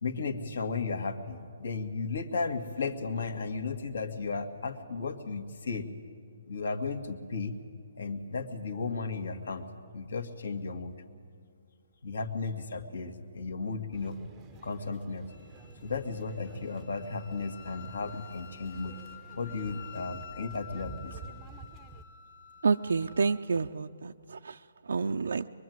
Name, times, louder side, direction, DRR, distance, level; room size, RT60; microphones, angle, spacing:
voice 1, 0.0-5.9 6.5-7.5 8.0-9.7 9.9-11.0 12.0-14.2 14.6-15.3 15.8-19.0 19.4-21.1, left 4 dB, 65° left, 8 dB, 2.2 m, -34 dB
sound 1, 13.9-22.0, right 4 dB, 10° right, 0.7 m, -51 dB
Wind instrument woodwind instrument, 15.3-23.5, left 9 dB, 40° left, 1.9 m, -50 dB
voice 2, 22.6-24.6 24.8-25.5, right 4 dB, 80° right, 4 dB, 0.6 m, -29 dB
23.5 x 23.0 x 9.5 m, 2.1 s
hypercardioid pair, 175°, 0 cm